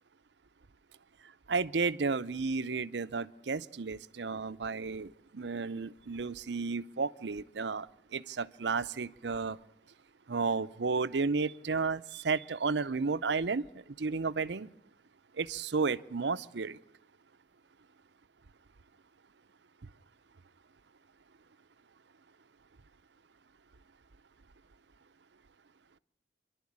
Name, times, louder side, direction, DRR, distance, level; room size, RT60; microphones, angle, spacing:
voice 1, 1.5-7.9 8.1-9.6 10.3-13.6 14.0-14.7 15.4-16.8, right 4 dB, 75° right, 14 dB, 0.7 m, -32 dB
26.5 x 11.5 x 8.7 m, 0.79 s
head